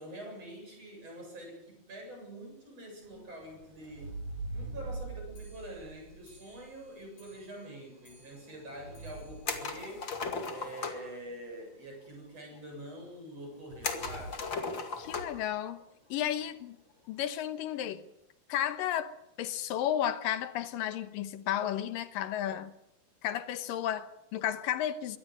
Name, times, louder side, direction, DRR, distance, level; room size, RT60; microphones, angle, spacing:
voice 1, 0.0-4.1 4.5-10.1 10.5-14.5, right 1 dB, 45° right, 8.9 m, -45 dB
sound 1, 3.0-7.1 8.1-10.4 13.7-14.6 15.0-15.5, right 2 dB, 85° right, 6.3 m, -44 dB
Clock, 5.3-10.8 11.1-11.2 11.5-11.6 11.9-12.0 12.3-12.4 13.1-13.2 13.9-14.0 14.6-14.7, equal, 60° left, 8.4 m, -63 dB
sound 2, 9.5-11.1 13.8-15.5 15.8-15.9 17.5-17.8, left 4 dB, 40° left, 2.5 m, -36 dB
voice 2, 15.0-15.8 16.1-16.8 17.1-18.0 18.5-19.1 19.4-22.7 23.2-25.2, left 11 dB, 90° left, 2.8 m, -33 dB
24.0 x 18.0 x 8.0 m
omnidirectional pair, 3.8 m